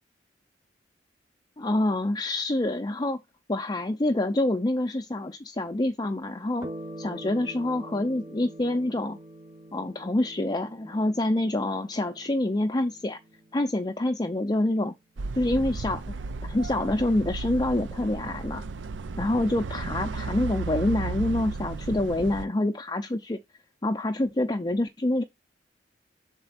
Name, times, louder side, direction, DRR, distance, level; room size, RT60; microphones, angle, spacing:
voice 1, 1.6-3.2 3.5-6.7 7.0-9.2 9.7-13.2 13.5-14.9 15.4-16.2 16.4-18.6 19.2-23.4 23.8-25.2, left 1 dB, 25° left, 0.5 m, -26 dB
sound 1, 6.6-15.5, right 1 dB, 20° right, 0.9 m, -45 dB
sound 2, 15.2-22.4, right 4 dB, 85° right, 0.5 m, -34 dB
6.6 x 4.3 x 4.1 m
head